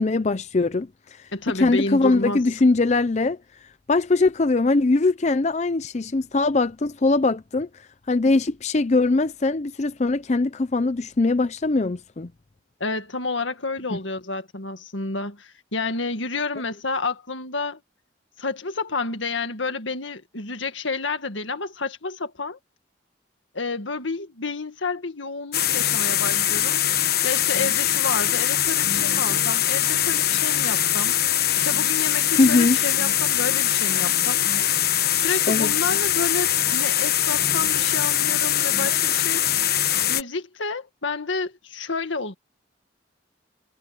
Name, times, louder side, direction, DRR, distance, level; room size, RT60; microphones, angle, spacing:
voice 1, 0.0-1.3 1.6-3.4 3.9-7.7 8.1-12.3 32.4-32.8 35.5-35.7, left 3 dB, 35° left, 0.5 m, -21 dB
voice 2, 1.3-2.4 12.8-17.8 18.4-22.6 23.5-26.8 27.2-34.4 35.2-39.5 40.1-42.3, left 3 dB, 85° left, 1.9 m, -30 dB
sound 1, 25.5-40.2, left 11 dB, 55° left, 1.2 m, -22 dB
head